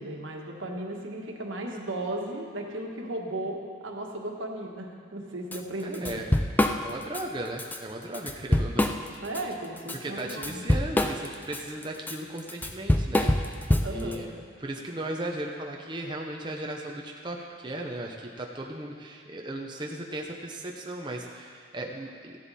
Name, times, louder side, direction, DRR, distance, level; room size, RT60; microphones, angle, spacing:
voice 1, 0.0-6.2 9.2-10.6 13.8-14.3, right 1 dB, 85° right, 1 dB, 1.5 m, -35 dB
Drum kit / Drum, 5.5-5.6 5.9-7.2 7.6-7.8 8.1-9.4 9.8-14.2, left 1 dB, 10° left, 0.4 m, -25 dB
voice 2, 5.8-6.4 6.8-9.0 10.0-13.3 13.9-14.3 14.6-22.4, right 1 dB, 25° right, 0 dB, 0.7 m, -36 dB
14.5 x 10.5 x 4.2 m, 2.1 s
head